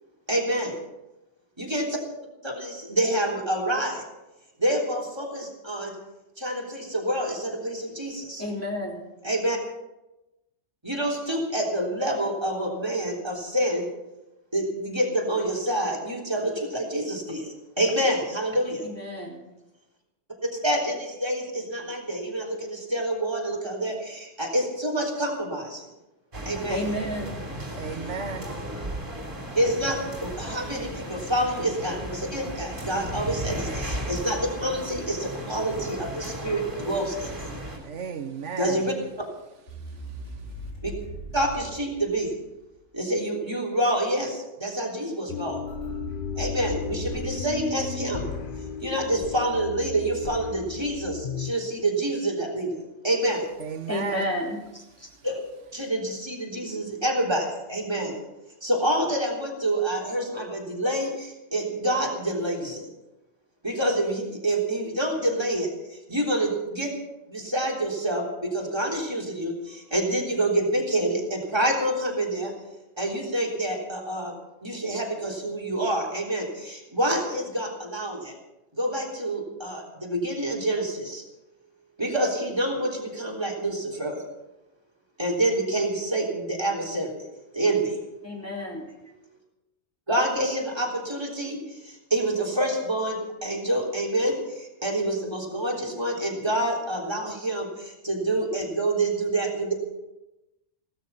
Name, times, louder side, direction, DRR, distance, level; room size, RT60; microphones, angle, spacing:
voice 1, 0.3-0.7 1.6-2.0 2.4-4.0 4.6-5.9 6.4-8.4 9.2-9.6 10.8-13.9 14.5-18.8 20.6-25.9 26.5-26.8 29.6-37.5 38.6-38.9 40.8-40.9 41.3-42.3 42.9-45.6 46.4-48.2 48.8-52.8 53.0-53.4 55.2-55.4 55.7-58.1 58.6-62.9 63.6-65.7 66.1-66.9 67.3-72.5 73.0-74.3 74.6-78.3 78.8-81.2 82.0-84.2 85.2-87.2 87.5-88.0 90.1-91.6 91.8-99.7, right 1 dB, 20° right, 3.6 m, -27 dB
voice 2, 8.4-9.0 18.8-19.4 26.7-27.4 53.9-54.6 55.0-55.1 88.2-88.8, left 1 dB, 10° left, 3.3 m, -30 dB
sound 1, 26.3-37.8, right 1 dB, 45° right, 3.4 m, -35 dB
voice 3, 27.7-28.7 37.7-38.9 53.6-54.3 55.0-55.3, right 6 dB, 90° right, 1.5 m, -35 dB
sound 2, 39.7-42.7 45.7-49.1, right 1 dB, 80° left, 6.3 m, -39 dB
sound 3, 45.3-51.5, left 6 dB, 50° left, 1.1 m, -35 dB
16.5 x 13.0 x 5.8 m
omnidirectional pair, 1.2 m